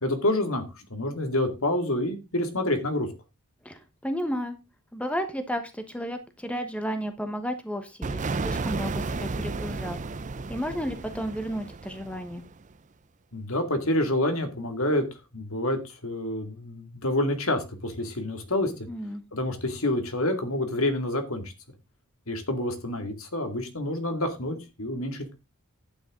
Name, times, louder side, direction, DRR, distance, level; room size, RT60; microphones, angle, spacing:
voice 1, 0.0-3.1 13.3-15.0 15.3-18.9 19.3-21.5 22.3-25.3, left 1 dB, 70° left, 7 dB, 2.4 m, -28 dB
voice 2, 3.6-4.6 4.9-10.0 10.5-12.4 18.9-19.2, equal, 5° left, 8 dB, 1.2 m, -33 dB
sound 1, 8.0-12.7, right 3 dB, 35° right, 0.5 m, -33 dB
11.5 x 9.4 x 3.8 m, 0.25 s
head